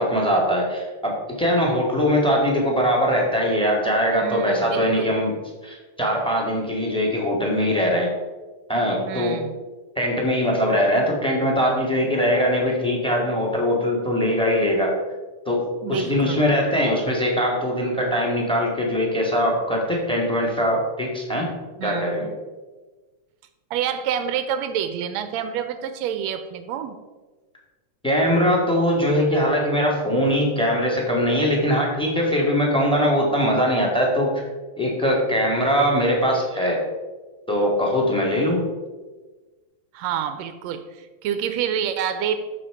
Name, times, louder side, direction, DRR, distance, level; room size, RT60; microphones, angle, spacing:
voice 1, 0.0-5.3 5.6-8.1 8.7-9.4 9.9-15.0 15.4-15.6 15.9-21.5 21.8-22.3 28.0-34.4 34.8-36.8 37.5-38.7, equal, ahead, -1 dB, 1.3 m, -21 dB
voice 2, 4.2-5.1 9.1-9.5 15.8-16.4 21.8-22.3 23.7-27.0 39.9-42.4, right 8 dB, 80° right, 10 dB, 1.7 m, -28 dB
13.5 x 4.8 x 4.9 m, 1.3 s
omnidirectional pair, 3.4 m